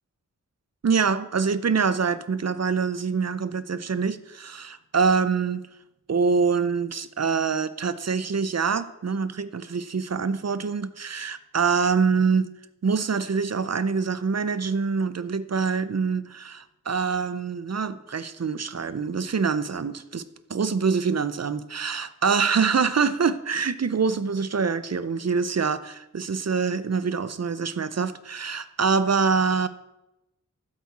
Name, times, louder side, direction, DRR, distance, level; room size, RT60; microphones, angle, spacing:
voice 1, 0.8-5.6 6.1-12.5 12.8-20.2 20.5-29.7, right 5 dB, 55° right, 0.6 m, -25 dB
13.0 x 7.7 x 4.2 m
wide cardioid pair, 65°, 31 cm